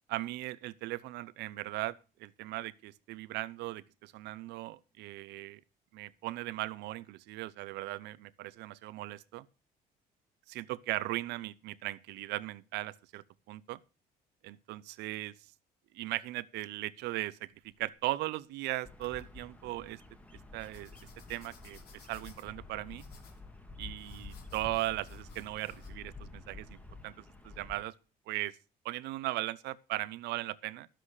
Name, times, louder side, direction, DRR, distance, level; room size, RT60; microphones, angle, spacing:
voice 1, 0.1-5.6 5.9-9.5 10.5-13.8 14.4-15.3 15.9-17.5 17.8-20.0 20.5-20.9 21.3-23.0 23.8-27.9 28.3-28.5 28.8-30.9, right 17 dB, 85° right, 0.7 m, -38 dB
sound 1, 17.5-18.5 19.0-19.5 20.6-25.9, left 6 dB, 70° left, 3.4 m, -60 dB
Bird vocalization bird call bird song, 18.8-27.8, left 3 dB, 10° left, 1.5 m, -49 dB
11.5 x 7.7 x 6.4 m
cardioid pair, 110°, 17 cm